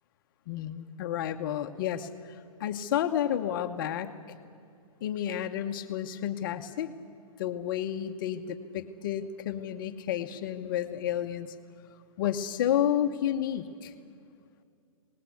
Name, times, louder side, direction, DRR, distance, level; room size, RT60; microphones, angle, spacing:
voice 1, 0.5-4.1 5.0-6.9 7.4-11.5 12.2-13.9, left 10 dB, 35° left, 7 dB, 0.9 m, -31 dB
25.5 x 19.0 x 8.4 m, 2.4 s
hypercardioid pair, 165°, 18 cm